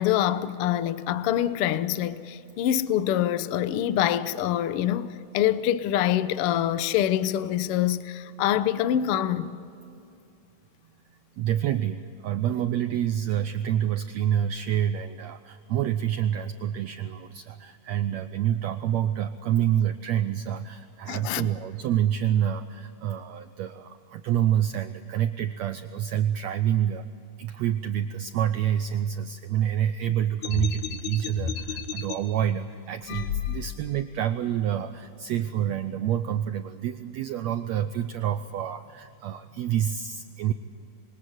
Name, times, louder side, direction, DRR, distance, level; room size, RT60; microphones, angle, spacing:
voice 1, 0.0-9.6 21.1-21.5, left 11 dB, 85° left, 1.2 m, -25 dB
voice 2, 11.4-27.1 27.4-40.5, right 10 dB, 80° right, 1.6 m, -27 dB
sound 1, 30.4-32.2 33.0-34.0, left 7 dB, 65° left, 2.5 m, -32 dB
27.0 x 23.0 x 8.1 m
omnidirectional pair, 3.9 m